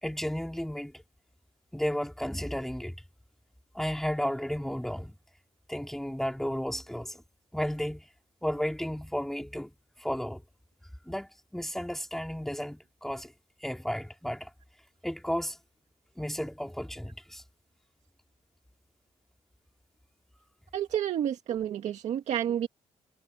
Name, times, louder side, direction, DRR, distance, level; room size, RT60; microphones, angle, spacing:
voice 1, 0.0-0.9 1.7-2.9 3.7-5.1 5.7-7.2 7.5-8.1 8.4-9.7 10.0-10.4 11.0-13.3 13.6-14.5 15.0-15.6 16.2-17.4, equal, 5° left, 3.2 m, -33 dB
voice 2, 20.7-22.7, right 10 dB, 75° right, 2.0 m, -30 dB
cardioid pair, 135°, 12 cm